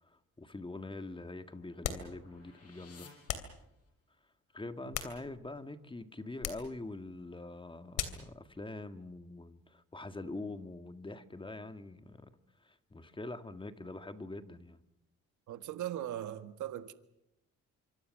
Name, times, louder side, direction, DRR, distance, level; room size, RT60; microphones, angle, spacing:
voice 1, 0.0-3.1 4.5-12.3 12.6-14.8, left 2 dB, 15° left, 1.8 m, -44 dB
sound 1, 0.7-4.2, left 5 dB, 50° left, 6.3 m, -60 dB
sound 2, 1.8-2.2 3.3-3.6 4.7-5.6 6.4-6.7 7.9-8.3, left 9 dB, 80° left, 3.0 m, -38 dB
voice 2, 15.5-16.9, right 12 dB, 75° right, 1.6 m, -39 dB
26.0 x 24.5 x 6.5 m
cardioid pair, 90°, 30 cm